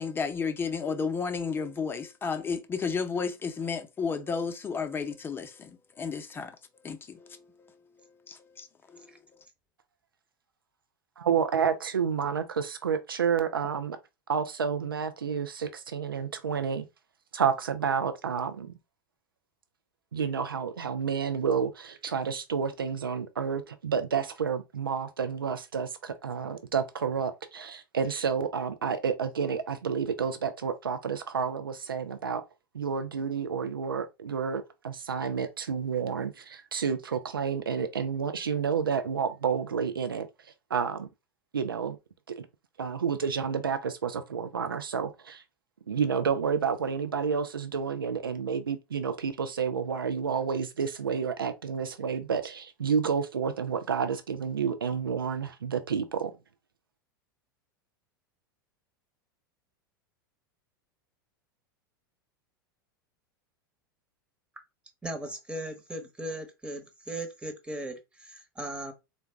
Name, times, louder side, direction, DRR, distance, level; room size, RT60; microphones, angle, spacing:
voice 1, 0.0-6.5 6.8-7.4 8.3-8.7 8.9-9.0, left 5 dB, 20° left, 0.6 m, -32 dB
voice 2, 11.2-14.0 14.3-16.8 17.3-18.7 20.1-32.4 32.7-41.1 41.5-42.0 42.4-42.5 42.8-45.4 45.9-56.4, right 6 dB, 85° right, 0.4 m, -30 dB
voice 3, 65.0-68.9, right 1 dB, 10° right, 1.0 m, -38 dB
3.8 x 2.2 x 3.4 m
figure-of-eight pair, 85°, 12 cm